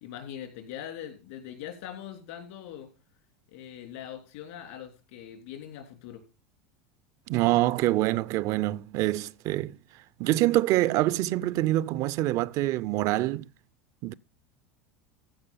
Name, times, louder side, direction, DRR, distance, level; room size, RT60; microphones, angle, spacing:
voice 1, 0.0-2.9 3.5-6.2, left 10 dB, 75° left, 3.3 m, -42 dB
voice 2, 7.3-9.8 10.2-13.5 14.0-14.1, right 16 dB, 55° right, 0.4 m, -25 dB
15.0 x 5.1 x 5.6 m
hypercardioid pair, 90°, 7 cm